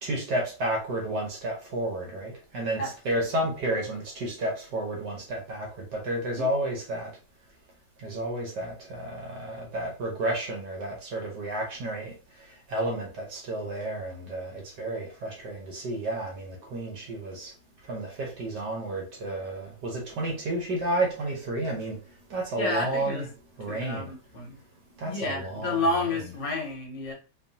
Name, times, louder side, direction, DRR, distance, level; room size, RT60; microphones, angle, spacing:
voice 1, 0.0-7.1 8.0-12.1 12.7-17.5 17.9-22.0 22.3-23.3 23.6-24.1 25.0-25.9, right 1 dB, 55° right, 1.5 m, -31 dB
voice 2, 22.6-23.2 23.7-24.6 25.0-27.1, left 2 dB, 60° left, 1.6 m, -30 dB
4.5 x 3.0 x 2.8 m
omnidirectional pair, 2.4 m